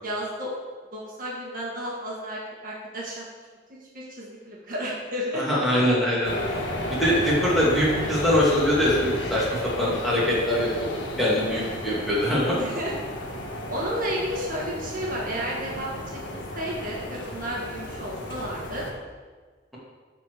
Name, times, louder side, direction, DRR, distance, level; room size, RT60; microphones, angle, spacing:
voice 1, 0.0-0.5 0.9-3.2 3.9-5.4 11.4-11.7 12.5-13.0 13.7-16.0 16.3-18.9, equal, 50° right, -4 dB, 1.7 m, -32 dB
voice 2, 5.3-6.3 6.9-10.9 11.2-12.5, equal, ahead, -8 dB, 2.5 m, -23 dB
sound 1, 6.2-18.9, left 1 dB, 75° left, 1.4 m, -33 dB
12.5 x 4.4 x 4.8 m, 1.4 s
head